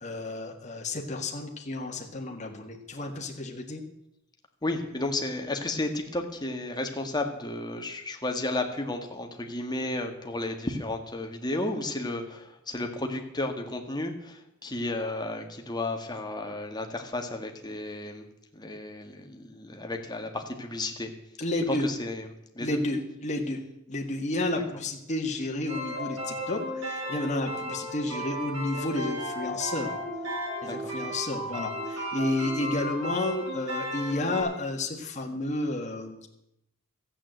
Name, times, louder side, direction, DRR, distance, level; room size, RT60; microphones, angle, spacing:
voice 1, 0.0-3.8 21.4-21.9 22.6-23.6 23.9-30.0 30.6-36.3, left 2 dB, 35° left, 1 dB, 1.8 m, -31 dB
voice 2, 4.6-18.3 18.5-21.1 21.7-22.3 22.6-22.8 30.6-30.9, left 2 dB, 20° left, 4 dB, 1.7 m, -33 dB
sound 1, 25.7-34.4, equal, 85° right, 6.1 m, -34 dB
13.5 x 8.8 x 7.7 m, 0.82 s
head